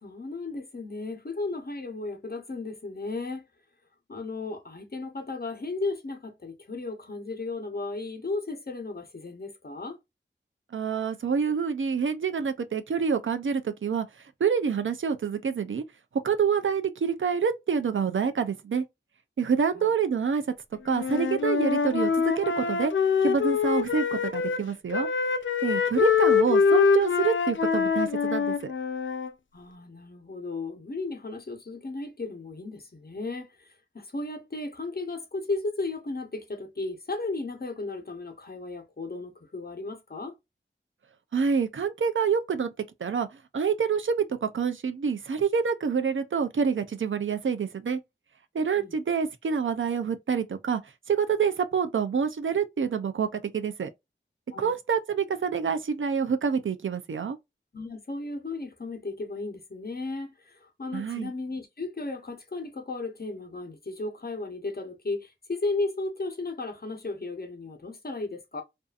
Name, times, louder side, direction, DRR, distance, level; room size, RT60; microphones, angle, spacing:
voice 1, 0.0-3.5 4.1-10.0 19.7-20.0 29.5-40.3 48.7-48.9 54.5-54.8 57.7-68.6, left 3 dB, 50° left, 0.8 m, -35 dB
voice 2, 10.7-14.1 14.4-15.8 16.2-18.8 19.4-20.4 20.8-22.9 23.2-25.1 25.6-28.5 41.3-42.7 43.0-43.3 43.5-48.0 48.5-50.8 51.1-53.3 53.5-53.9 54.6-57.4 60.9-61.3, right 6 dB, 75° right, 0.5 m, -27 dB
Wind instrument woodwind instrument, 20.9-24.6 24.9-29.3, left 6 dB, 75° left, 0.4 m, -24 dB
2.6 x 2.4 x 2.3 m
wide cardioid pair, 50°, 20 cm